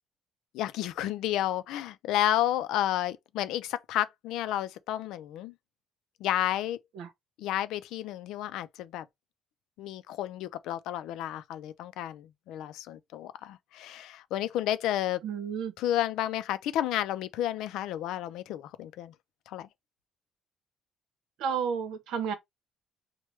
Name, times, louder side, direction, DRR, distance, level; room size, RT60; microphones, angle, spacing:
voice 1, 0.5-5.5 6.2-6.8 7.4-9.0 9.8-15.2 15.8-19.1 19.5-19.7, left 12 dB, 85° left, 0.4 m, -31 dB
voice 2, 15.2-15.7 21.4-22.3, right 7 dB, 75° right, 0.8 m, -31 dB
3.1 x 2.2 x 3.0 m
cardioid pair, 145°, 0 cm